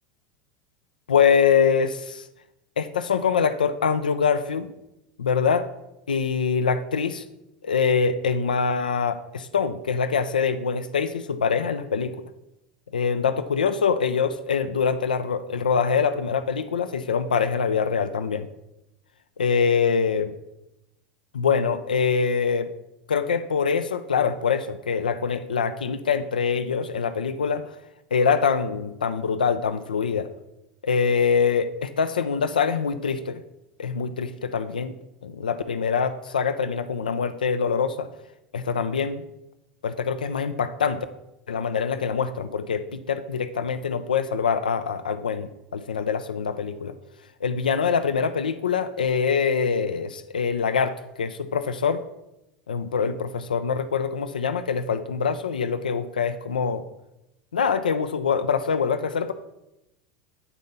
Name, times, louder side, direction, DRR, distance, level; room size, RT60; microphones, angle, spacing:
voice 1, 1.1-2.3 2.8-4.7 5.2-5.7 6.1-7.2 7.6-12.1 12.9-18.5 19.4-20.3 21.3-22.7 23.1-27.6 28.1-30.3 30.8-33.4 33.8-34.9 35.2-38.1 38.5-39.2 39.8-41.1 41.5-46.9 47.4-52.0 52.7-56.8 57.5-59.3, left 6 dB, 85° left, 11 dB, 0.4 m, -24 dB
8.1 x 4.0 x 5.4 m, 0.90 s
hypercardioid pair, 85°, 5 cm